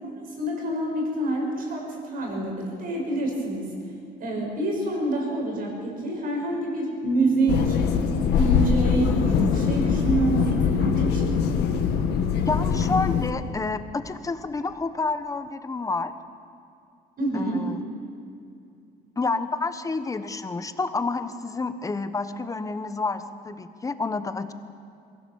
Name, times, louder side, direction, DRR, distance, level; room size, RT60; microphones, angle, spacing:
voice 1, 0.0-3.7 4.2-7.8 8.3-11.3 17.2-17.7, right 2 dB, 55° right, 0 dB, 6.8 m, -27 dB
sound 1, 7.5-13.3, left 6 dB, 80° left, 1.6 m, -22 dB
voice 2, 12.5-16.1 17.3-17.8 19.2-24.5, left 3 dB, 20° left, 11 dB, 1.1 m, -29 dB
22.5 x 16.0 x 7.2 m, 2.6 s
cardioid pair, 110°, 17 cm